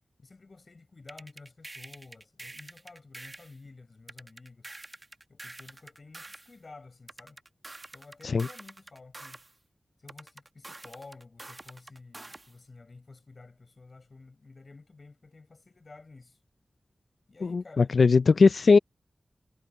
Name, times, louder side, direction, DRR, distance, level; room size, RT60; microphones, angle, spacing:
voice 1, 0.2-4.7 5.3-7.4 7.9-9.4 10.0-16.4 17.3-18.2, left 3 dB, 55° left, 4.8 m, -51 dB
sound 1, 1.1-3.6 4.1-6.5 7.1-9.5 10.1-12.5, right 2 dB, 35° right, 1.2 m, -46 dB
voice 2, 17.5-18.8, left 4 dB, 85° left, 0.4 m, -19 dB
wide cardioid pair, 95°, 0 cm